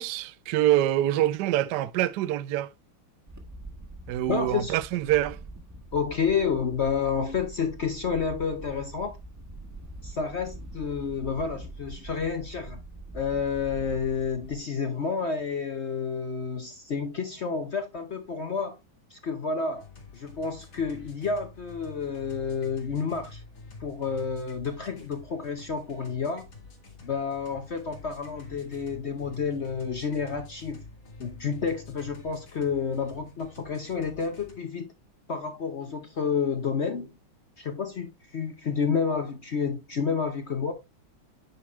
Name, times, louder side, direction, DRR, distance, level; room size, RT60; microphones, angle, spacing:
voice 1, 0.0-2.7 4.1-5.4, right 13 dB, 70° right, 1.1 m, -25 dB
Wind, 3.3-14.6, right 1 dB, 10° right, 0.9 m, -44 dB
voice 2, 4.3-4.8 5.9-9.1 10.0-12.8 13.1-18.8 19.1-19.8 20.1-23.4 23.8-26.4 27.0-30.8 31.2-34.9 35.3-37.1 37.6-40.7, left 5 dB, 50° left, 0.8 m, -30 dB
sound 1, 19.8-34.5, left 3 dB, 75° left, 3.0 m, -48 dB
9.5 x 4.9 x 3.1 m
omnidirectional pair, 2.1 m